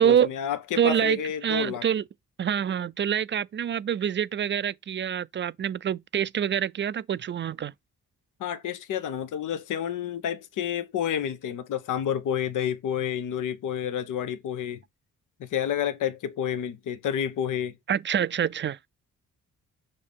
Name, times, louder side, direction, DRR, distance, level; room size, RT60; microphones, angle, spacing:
voice 1, 0.0-1.8 8.4-14.8 15.4-17.7, left 9 dB, 80° left, 0.8 m, -29 dB
voice 2, 0.8-2.0 2.4-7.7 17.9-18.8, right 9 dB, 40° right, 0.4 m, -26 dB
6.7 x 2.7 x 5.3 m
cardioid pair, 75°, 31 cm